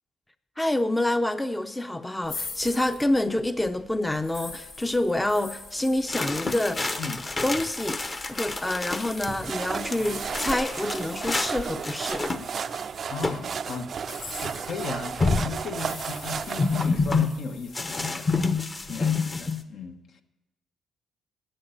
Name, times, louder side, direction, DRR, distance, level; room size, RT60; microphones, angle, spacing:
voice 1, 0.6-7.0 7.4-8.0 8.3-12.3, left 1 dB, 10° left, 10 dB, 0.6 m, -27 dB
sound 1, 2.2-13.2 13.9-18.8, left 3 dB, 85° left, 3.1 m, -43 dB
sound 2, 6.1-9.3 9.6-11.5 11.8-12.8 13.2-13.5 13.7-13.8 14.7-14.8 15.2-15.6 16.6-17.3 17.7-19.6, left 4 dB, 30° left, 0.9 m, -28 dB
sound 3, 9.3-16.9, right 7 dB, 50° right, 0.4 m, -33 dB
voice 2, 13.1-20.2, left 4 dB, 70° left, 6 dB, 1.1 m, -37 dB
11.0 x 7.8 x 9.0 m, 0.99 s
cardioid pair, 90°, 0 cm